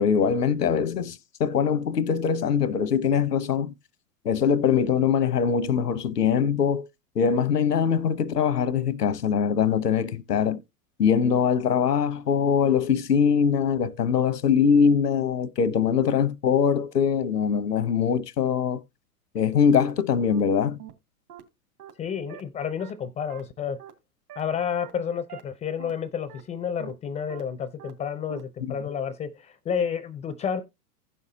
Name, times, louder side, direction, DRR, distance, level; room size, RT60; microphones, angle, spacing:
voice 1, 0.0-3.7 4.2-6.9 7.1-10.6 11.0-18.8 19.3-20.8 28.6-28.8, left 7 dB, 85° left, 0.9 m, -22 dB
sound 1, 19.8-19.9 20.3-20.4 20.8-20.9 21.3-21.4 21.8-21.9 22.3-22.4 22.8-22.9 23.3-23.4 23.8-23.9 24.3-24.4 24.8-24.9 25.3-25.4 25.8-25.9 26.3-26.4 26.8-26.9 27.3-27.4 27.8-27.9 28.3-28.4 28.8-28.9, right 11 dB, 70° right, 2.7 m, -43 dB
voice 2, 22.0-23.8 24.4-30.6, left 7 dB, 15° left, 0.4 m, -30 dB
16.0 x 5.6 x 2.7 m
hypercardioid pair, 95°, 47 cm